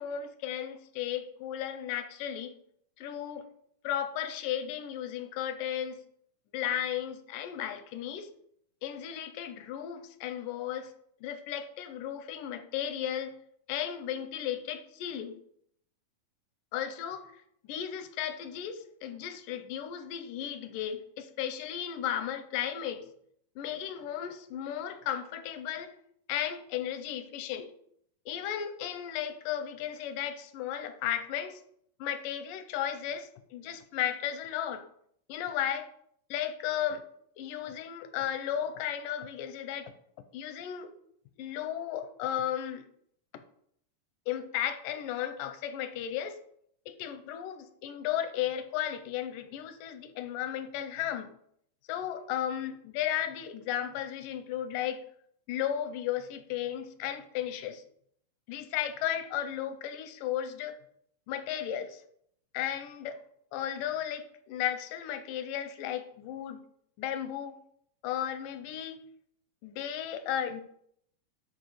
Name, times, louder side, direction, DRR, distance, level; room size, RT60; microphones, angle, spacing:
voice 1, 0.0-2.5 3.0-3.5 3.8-6.0 6.5-8.3 8.8-10.9 11.2-13.4 13.7-15.4 16.7-17.3 17.7-23.0 23.6-26.0 26.3-27.7 28.3-31.6 32.0-34.8 35.3-35.9 36.3-37.0 37.4-39.9 40.3-40.9 41.4-42.8 44.3-46.4 46.9-51.3 51.9-55.0 55.5-57.8 58.5-60.8 61.3-62.0 62.5-63.2 63.5-66.6 67.0-67.6 68.0-69.0 69.6-70.6, left 10 dB, 85° left, 10 dB, 2.2 m, -34 dB
10.5 x 4.5 x 4.8 m, 0.69 s
omnidirectional pair, 3.8 m